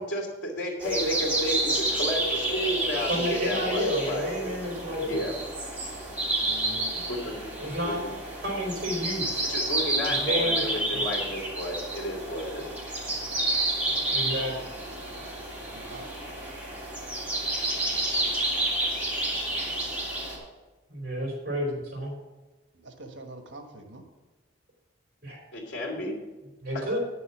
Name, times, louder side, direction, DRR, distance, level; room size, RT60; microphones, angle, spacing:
voice 1, 0.0-4.3 5.0-5.4 7.1-7.5 9.4-12.7 25.5-26.2 26.7-26.8, equal, 65° left, 0 dB, 2.9 m, -32 dB
sound 1, 0.8-20.4, right 1 dB, 10° right, 3.1 m, -29 dB
voice 2, 3.1-5.2 6.9-7.1 7.6-8.0 8.4-9.5 10.1-10.6 10.9-11.1 14.1-14.7 20.9-22.1 25.2-25.4 26.6-27.0, equal, 50° right, -1 dB, 4.0 m, -31 dB
voice 3, 6.4-6.9 15.7-16.1 22.8-24.0, right 1 dB, 75° right, 5 dB, 1.3 m, -44 dB
9.9 x 6.8 x 7.1 m, 1.2 s
head